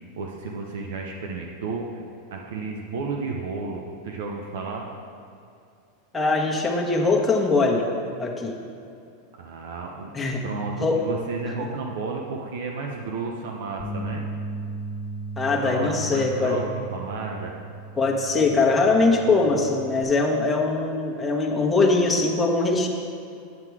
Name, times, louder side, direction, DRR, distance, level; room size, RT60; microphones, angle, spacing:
voice 1, 0.2-1.9 2.3-4.9 9.4-14.2 15.5-17.5, right 4 dB, 75° right, 1 dB, 0.8 m, -32 dB
voice 2, 6.1-7.8 8.2-8.5 10.1-10.5 10.8-11.0 11.6-11.7 15.4-16.6 18.0-22.9, left 3 dB, 10° left, -2 dB, 1.2 m, -22 dB
sound 1, 13.8-20.0, right 2 dB, 40° left, 1.3 m, -36 dB
9.4 x 5.8 x 4.8 m, 2.6 s
supercardioid pair, 125°, 0 cm